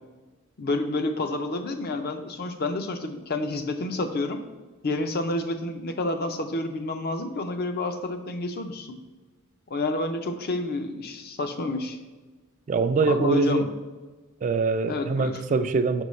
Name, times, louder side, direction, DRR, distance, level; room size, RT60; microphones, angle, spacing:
voice 1, 0.6-4.4 4.8-9.0 9.7-12.0 13.1-13.7 14.9-15.4, left 2 dB, 45° left, 7 dB, 0.6 m, -29 dB
voice 2, 12.7-13.7 14.4-16.0, right 4 dB, 35° right, 9 dB, 0.3 m, -23 dB
6.2 x 5.3 x 3.1 m, 1.3 s
head